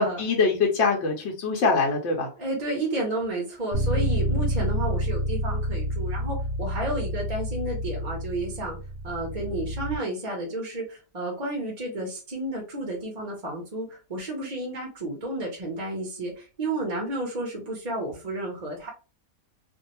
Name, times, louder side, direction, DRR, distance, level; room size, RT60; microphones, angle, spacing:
voice 1, 0.0-2.3, left 4 dB, 65° left, 1 dB, 0.8 m, -23 dB
voice 2, 2.4-8.8 9.0-18.9, right 1 dB, 40° right, 0 dB, 0.6 m, -31 dB
Bass guitar, 3.7-10.0, equal, 90° left, 1.1 m, -28 dB
2.5 x 2.0 x 2.8 m, 0.32 s
omnidirectional pair, 1.5 m